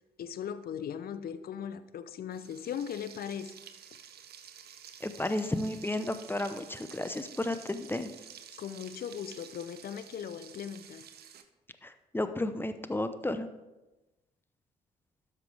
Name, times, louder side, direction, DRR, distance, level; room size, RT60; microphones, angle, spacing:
voice 1, 0.2-3.5 8.6-11.1, left 8 dB, 50° left, 13 dB, 0.6 m, -38 dB
Frying (food), 2.3-11.4, right 8 dB, 55° right, 0.8 m, -51 dB
voice 2, 5.0-8.1 11.8-13.5, left 1 dB, 10° left, 10 dB, 0.8 m, -33 dB
12.5 x 6.0 x 3.5 m, 1.1 s
hypercardioid pair, 45°, 20 cm